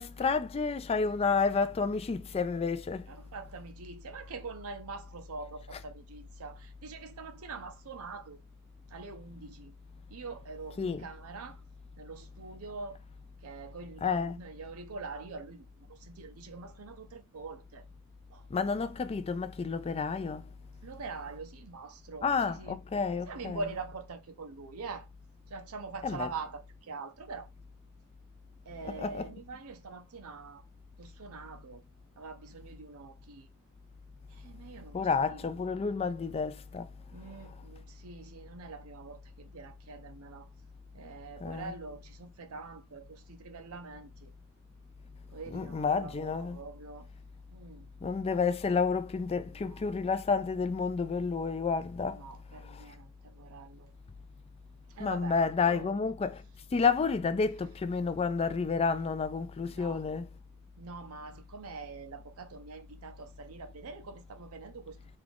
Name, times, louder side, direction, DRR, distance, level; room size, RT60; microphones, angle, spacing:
voice 1, 0.0-3.1 10.8-11.0 14.0-14.4 18.5-20.4 22.2-23.6 26.0-26.3 29.0-29.2 34.9-36.9 41.4-41.7 45.5-46.6 48.0-52.2 52.6-52.8 55.0-56.4 56.7-60.3, left 5 dB, 25° left, 0.3 m, -30 dB
voice 2, 3.1-8.4 8.9-9.7 10.1-11.6 12.0-13.0 13.4-17.9 18.3-18.5 20.8-22.8 23.3-25.1 25.5-27.5 28.7-30.6 31.0-31.8 32.2-33.5 34.3-35.5 37.1-40.5 40.9-44.3 45.3-47.1 47.5-47.9 49.4-49.8 52.0-53.9 54.9-56.0 59.6-60.0 60.8-65.0, right 4 dB, 70° right, 0.5 m, -44 dB
3.6 x 2.3 x 3.4 m
head